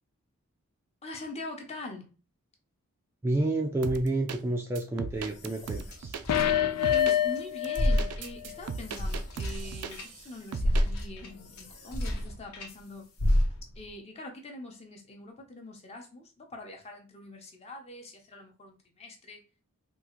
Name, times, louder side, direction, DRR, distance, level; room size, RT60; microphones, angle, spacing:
voice 1, 1.0-2.1 6.9-13.1 13.7-19.4, left 1 dB, 30° left, 0.7 m, -43 dB
voice 2, 3.2-6.2, right 2 dB, 10° right, 0.3 m, -29 dB
sound 1, 3.8-4.4 4.8-6.2 6.8-7.2 7.6-10.2 10.5-10.9, right 5 dB, 80° right, 0.4 m, -37 dB
sound 2, 5.1-7.4 7.7-12.8 13.2-13.9, equal, 70° left, 0.8 m, -31 dB
sound 3, 6.3-8.1 8.4-8.5, left 11 dB, 90° left, 0.4 m, -26 dB
3.6 x 2.4 x 2.9 m
head